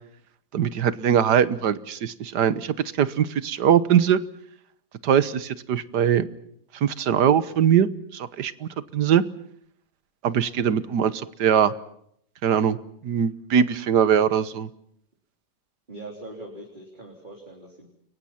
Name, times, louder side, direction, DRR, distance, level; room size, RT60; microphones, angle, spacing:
voice 1, 0.5-4.2 5.0-6.3 6.7-9.2 10.2-11.7 12.4-12.8 13.0-14.7, right 8 dB, 85° right, 15 dB, 1.7 m, -21 dB
voice 2, 15.9-17.9, right 1 dB, 30° right, 0 dB, 3.9 m, -41 dB
30.0 x 23.0 x 5.8 m, 0.70 s
omnidirectional pair, 1.7 m